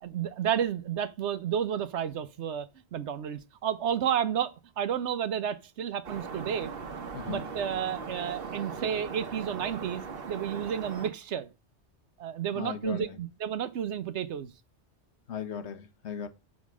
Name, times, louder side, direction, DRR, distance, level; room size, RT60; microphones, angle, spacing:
voice 1, 0.0-6.7 7.3-11.5 12.2-14.5, right 9 dB, 80° right, 1.1 m, -31 dB
sound 1, 6.0-11.1, right 5 dB, 55° right, 1.1 m, -39 dB
voice 2, 7.1-7.4 12.5-13.2 15.3-16.3, left 8 dB, 75° left, 1.3 m, -37 dB
7.4 x 5.1 x 6.1 m
omnidirectional pair, 1.2 m